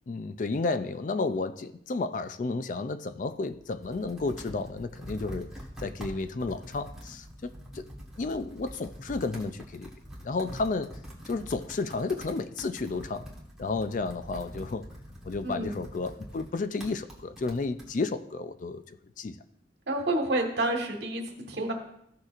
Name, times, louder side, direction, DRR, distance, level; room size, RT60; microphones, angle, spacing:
voice 1, 0.1-5.5 5.8-7.9 8.2-9.9 10.2-11.0 11.3-13.3 13.6-14.9 15.2-19.4, left 3 dB, 45° left, 12 dB, 0.4 m, -32 dB
Computer keyboard, 3.3-17.9, equal, 5° right, 1.5 m, -45 dB
voice 2, 15.4-15.8 19.9-21.7, right 2 dB, 75° right, 2 dB, 1.5 m, -29 dB
14.5 x 6.4 x 2.5 m, 0.75 s
head